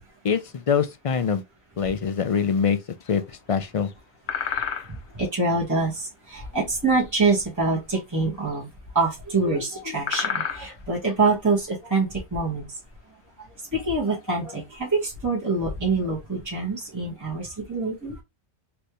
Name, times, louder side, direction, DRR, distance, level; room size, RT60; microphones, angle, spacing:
voice 1, 0.2-1.4 1.8-2.8 3.1-3.9, left 6 dB, 55° left, 0.3 m, -24 dB
sound 1, 3.0-3.6 3.8-3.9 4.3-5.2 5.8-7.2 7.4-7.8 8.1-8.2 8.5-8.6 9.4-9.5 9.8-11.3 11.6-11.9 12.4-13.6 14.0-14.3 14.7-14.8 15.1-15.5 16.2-16.3 16.6-16.8, left 8 dB, 75° left, 1.0 m, -32 dB
voice 2, 4.9-8.7 8.9-12.6 13.7-18.2, right 3 dB, 15° right, 1.6 m, -25 dB
4.3 x 3.4 x 3.1 m
omnidirectional pair, 1.2 m